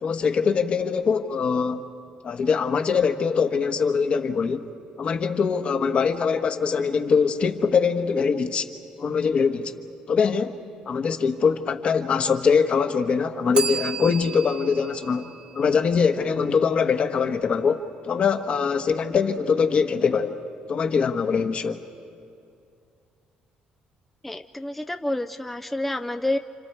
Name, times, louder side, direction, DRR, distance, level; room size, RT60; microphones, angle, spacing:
voice 1, 0.0-1.8 2.2-4.7 5.0-8.7 9.0-9.7 10.1-10.6 10.8-15.3 15.5-20.4 20.7-21.8, left 5 dB, 45° left, 6 dB, 1.3 m, -23 dB
Bell, 13.5-16.4, right 6 dB, 35° right, 1.0 m, -34 dB
voice 2, 24.2-26.4, left 1 dB, 5° left, 6 dB, 0.5 m, -28 dB
29.5 x 26.5 x 4.8 m, 2.5 s
cardioid pair, 120°, 3 cm